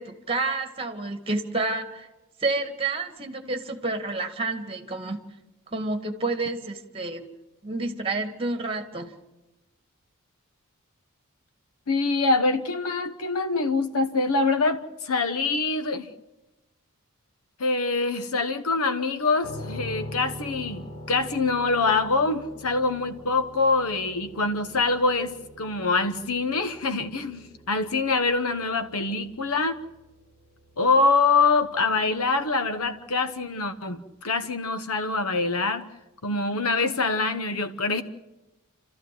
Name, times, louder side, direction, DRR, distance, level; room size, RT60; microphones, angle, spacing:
voice 1, 0.0-2.1 2.4-5.2 5.7-7.3 7.6-9.1, right 3 dB, 25° right, 7 dB, 2.0 m, -29 dB
voice 2, 11.9-16.1 17.6-29.8 30.8-34.0 34.2-35.8 36.2-38.0, left 3 dB, 85° left, 10 dB, 1.1 m, -25 dB
sound 1, 19.4-33.2, left 1 dB, 40° left, 4.6 m, -44 dB
29.0 x 14.0 x 7.7 m, 1.0 s
head